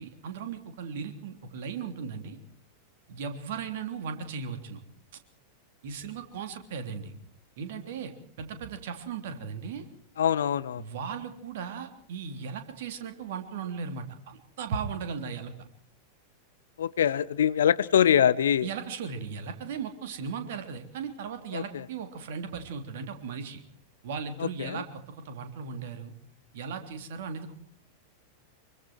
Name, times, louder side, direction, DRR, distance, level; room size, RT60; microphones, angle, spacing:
voice 1, 0.0-2.4 3.1-4.8 5.8-7.1 7.6-8.1 8.4-9.8 10.8-15.5 18.6-23.6 24.0-26.1 26.5-27.5, right 6 dB, 55° right, 7 dB, 3.3 m, -37 dB
voice 2, 10.2-10.8 16.8-18.7 21.5-21.6 24.4-24.8, left 9 dB, 65° left, 19 dB, 0.8 m, -24 dB
25.5 x 23.5 x 4.7 m, 0.63 s
figure-of-eight pair, 90°, 0 cm